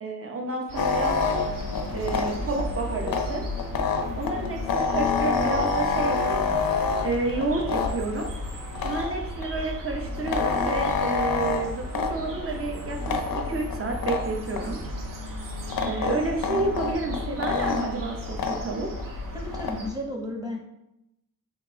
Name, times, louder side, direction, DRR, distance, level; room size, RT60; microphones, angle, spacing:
voice 1, 0.0-1.4 1.9-3.4 4.2-6.6 7.0-8.3 8.8-14.8 15.8-18.9, right 3 dB, 40° right, 2 dB, 0.8 m, -30 dB
sound 1, 0.7-19.9, left 1 dB, 70° right, 0.8 m, -35 dB
sound 2, 0.8-9.5 9.9-19.9, left 5 dB, 80° left, 0.5 m, -29 dB
voice 2, 19.3-20.6, left 1 dB, 10° right, 0 dB, 1.1 m, -33 dB
3.7 x 2.6 x 4.0 m, 0.85 s
cardioid pair, 45°, 34 cm